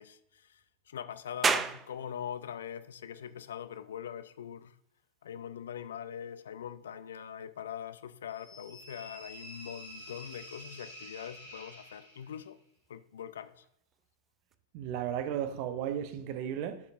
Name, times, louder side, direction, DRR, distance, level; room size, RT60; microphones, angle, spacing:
voice 1, 0.0-4.8 5.2-12.6 12.9-13.6, left 9 dB, 65° left, 0.4 m, -42 dB
sound 1, 1.4-14.5, right 5 dB, 20° right, 0.4 m, -41 dB
sound 2, 8.3-12.5, equal, 85° right, 2.9 m, -49 dB
voice 2, 14.7-16.8, right 9 dB, 45° right, 0.7 m, -34 dB
12.0 x 5.2 x 2.4 m
figure-of-eight pair, 90°, 0 cm